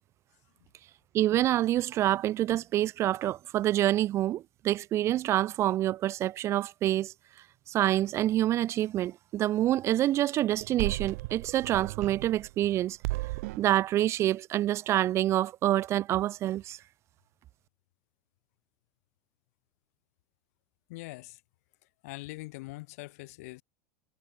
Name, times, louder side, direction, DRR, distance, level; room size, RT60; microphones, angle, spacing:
voice 1, 1.1-7.1 7.7-13.0 13.6-16.8, right 13 dB, 35° right, 0.5 m, -27 dB
sound 1, 10.5-12.7 13.0-13.7, right 22 dB, 75° right, 3.9 m, -35 dB
voice 2, 20.9-21.4 22.0-23.6, left 22 dB, 75° left, 5.2 m, -42 dB
supercardioid pair, 150°, 8 cm